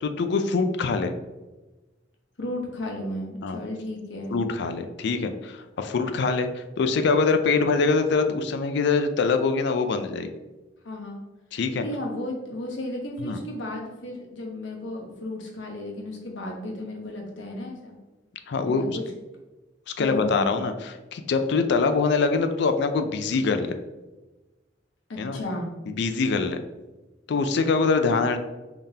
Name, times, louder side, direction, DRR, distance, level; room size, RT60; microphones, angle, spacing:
voice 1, 0.0-1.1 3.4-3.6 4.3-10.3 11.5-11.8 13.2-13.4 18.5-19.0 19.9-23.8 25.2-25.4 25.9-26.6 27.3-28.4, left 4 dB, 65° left, 8 dB, 0.4 m, -24 dB
voice 2, 2.4-4.4 10.8-11.2 11.8-18.0 18.7-19.0 20.0-20.5 25.1-25.7, left 1 dB, 85° left, -1 dB, 1.0 m, -34 dB
3.7 x 3.5 x 2.7 m, 1.1 s
head